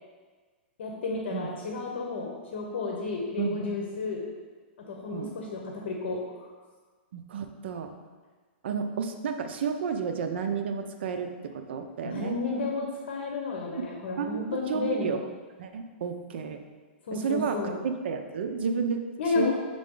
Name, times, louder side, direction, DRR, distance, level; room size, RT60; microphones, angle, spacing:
voice 1, 0.8-4.2 4.9-6.5 12.0-15.2 17.1-17.8 19.2-19.5, left 4 dB, 70° left, 0 dB, 1.0 m, -32 dB
voice 2, 7.1-7.9 8.6-12.3 14.2-15.2 15.6-16.6 17.1-17.8 18.0-19.0 19.3-19.5, right 6 dB, 70° right, 6 dB, 0.6 m, -31 dB
6.6 x 3.8 x 3.7 m, 1.4 s
hypercardioid pair, 160°, 6 cm